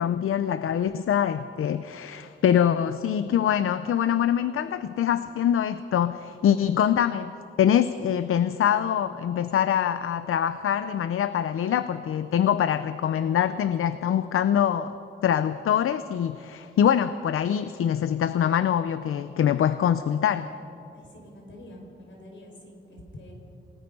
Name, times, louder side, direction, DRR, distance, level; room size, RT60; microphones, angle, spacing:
voice 1, 0.0-14.9 15.2-20.5, left 9 dB, 90° left, 12 dB, 0.6 m, -24 dB
voice 2, 20.9-23.3, left 1 dB, 65° left, 0 dB, 5.0 m, -46 dB
28.0 x 18.5 x 5.5 m, 2.8 s
wide cardioid pair, 175°, 21 cm